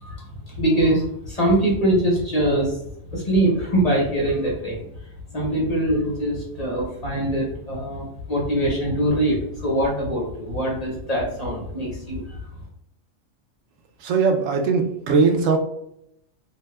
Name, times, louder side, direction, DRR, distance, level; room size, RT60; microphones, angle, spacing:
voice 1, 0.0-2.8 3.1-12.4, right 1 dB, 35° left, -3 dB, 0.9 m, -23 dB
voice 2, 14.0-15.6, right 5 dB, 85° right, 4 dB, 1.0 m, -19 dB
2.7 x 2.3 x 3.1 m, 0.77 s
omnidirectional pair, 1.3 m